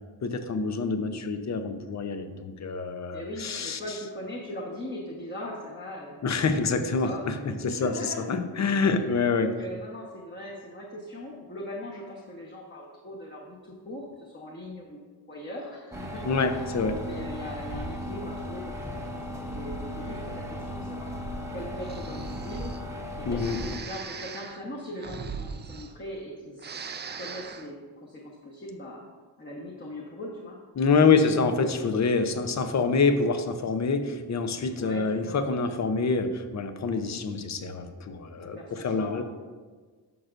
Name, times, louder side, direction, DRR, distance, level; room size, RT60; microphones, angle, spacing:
voice 1, 0.2-3.8 6.2-9.5 16.2-17.1 23.3-23.6 30.8-39.2, left 4 dB, 40° left, 8 dB, 0.7 m, -26 dB
voice 2, 3.1-6.3 6.5-8.3 9.4-16.4 16.9-19.2 19.5-21.1 21.5-22.7 23.2-26.9 27.1-29.0 29.4-30.6 31.2-32.0 34.8-35.4 38.4-39.2, left 1 dB, 25° left, -4 dB, 1.1 m, -40 dB
sound 1, 15.9-23.8, equal, 5° right, 0.9 m, -36 dB
Breathing, 21.8-22.8 23.4-26.3 26.5-27.7, right 6 dB, 25° right, 0.4 m, -40 dB
11.0 x 6.5 x 2.5 m, 1.4 s
cardioid pair, 115°, 43 cm